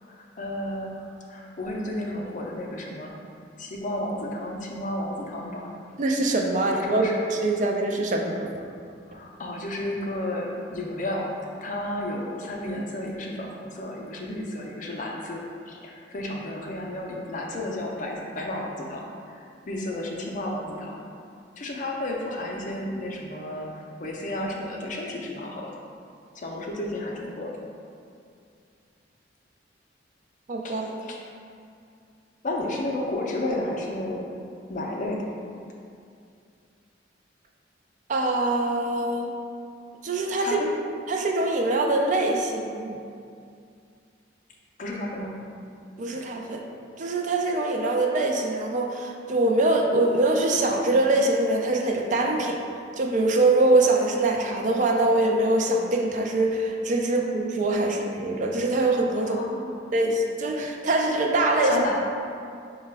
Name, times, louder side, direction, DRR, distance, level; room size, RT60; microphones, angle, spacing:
voice 1, 0.0-1.0 1.3-3.1 3.6-5.7 6.7-7.2 9.1-19.1 19.3-21.0 21.6-25.7 26.3-27.5 30.6-31.2 32.4-34.3 34.7-35.3 40.4-40.7 44.8-45.3 59.2-59.8 61.6-62.0, left 1 dB, 40° left, -1 dB, 0.5 m, -32 dB
voice 2, 6.0-8.5 30.5-31.1 38.1-39.3 40.0-40.6 41.1-43.0 46.0-46.6 47.0-52.6 53.0-59.4 59.9-61.8, right 2 dB, 40° right, 1 dB, 0.3 m, -23 dB
5.7 x 2.2 x 3.3 m, 2.4 s
head